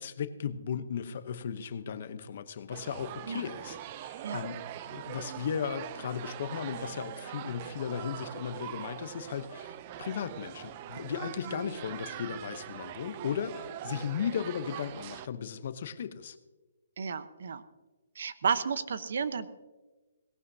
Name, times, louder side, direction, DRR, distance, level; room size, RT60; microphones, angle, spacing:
voice 1, 0.0-16.4, left 7 dB, 45° left, 12 dB, 0.8 m, -36 dB
sound 1, 2.7-15.3, right 12 dB, 25° right, 0.4 m, -42 dB
voice 2, 17.0-17.6 18.1-19.5, right 6 dB, 60° right, 13 dB, 0.9 m, -32 dB
18.0 x 17.0 x 2.8 m, 1.2 s
hypercardioid pair, 170°, 0 cm